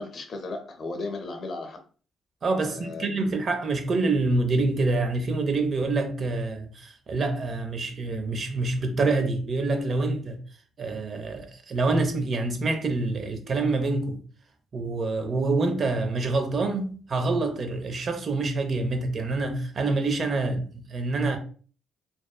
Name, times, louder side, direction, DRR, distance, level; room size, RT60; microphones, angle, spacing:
voice 1, 0.0-1.8 2.7-3.4, left 3 dB, 50° left, 0.6 m, -36 dB
voice 2, 2.4-10.4 10.8-14.2 14.7-21.4, right 3 dB, 45° right, 0.5 m, -26 dB
2.7 x 2.1 x 2.2 m
cardioid pair, 90°, 0 cm